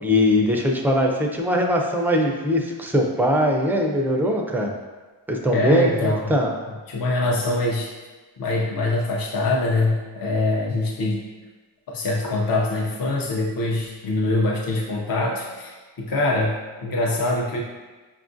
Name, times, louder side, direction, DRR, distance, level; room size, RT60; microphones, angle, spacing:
voice 1, 0.0-4.7 5.3-6.5, equal, 5° right, 0 dB, 0.4 m, -21 dB
voice 2, 5.5-6.3 6.9-7.9 8.4-11.2 11.9-17.6, left 2 dB, 45° left, -2 dB, 0.6 m, -24 dB
5.6 x 2.4 x 2.5 m, 1.3 s
wide cardioid pair, 80°, 49 cm